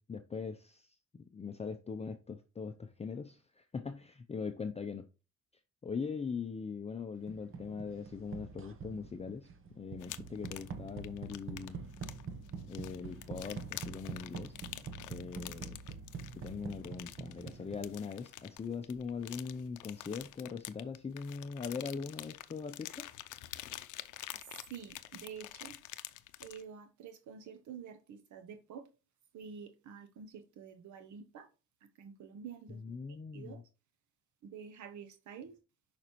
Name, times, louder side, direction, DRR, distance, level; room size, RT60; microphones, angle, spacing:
voice 1, 0.0-5.1 5.8-9.5 9.8-11.8 12.7-14.5 15.1-15.8 16.4-23.0 32.7-33.6, left 5 dB, 20° left, 0.5 m, -41 dB
sound 1, 7.3-18.1, right 5 dB, 45° right, 1.0 m, -46 dB
sound 2, 10.0-26.6, left 15 dB, 85° left, 0.6 m, -48 dB
voice 2, 24.7-25.8 26.4-28.8 29.3-31.5 32.0-32.8 33.3-33.6 34.4-35.6, right 7 dB, 70° right, 0.8 m, -48 dB
6.6 x 5.2 x 3.0 m
cardioid pair, 90°, 30 cm